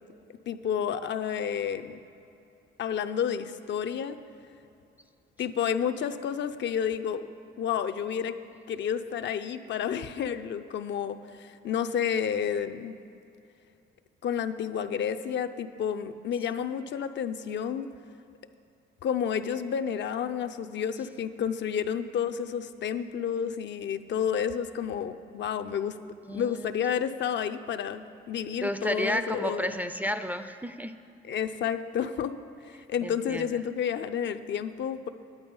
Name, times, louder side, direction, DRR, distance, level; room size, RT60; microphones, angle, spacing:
voice 1, 0.5-2.0 2.8-4.2 5.4-7.3 7.6-8.4 8.7-13.0 14.2-17.9 19.0-26.0 26.3-29.8 31.2-32.4 32.9-35.1, left 8 dB, 60° left, 9 dB, 0.5 m, -30 dB
voice 2, 26.2-26.7 28.6-31.0 33.0-33.6, equal, 10° right, 10 dB, 0.4 m, -32 dB
10.5 x 8.7 x 5.3 m, 2.6 s
cardioid pair, 80°, 21 cm